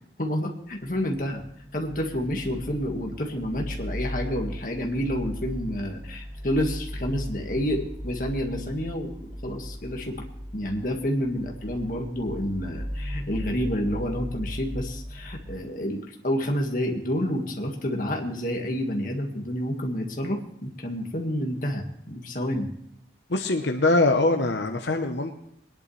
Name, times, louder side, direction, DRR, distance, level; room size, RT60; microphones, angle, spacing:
voice 1, 0.2-1.4 1.7-10.2 10.5-22.7, equal, 50° left, 1 dB, 1.8 m, -29 dB
sound 1, 0.7-15.5, equal, 10° right, 2.8 m, -37 dB
voice 2, 23.3-25.4, left 2 dB, 85° left, 4 dB, 1.0 m, -23 dB
21.5 x 10.5 x 3.3 m, 0.72 s
head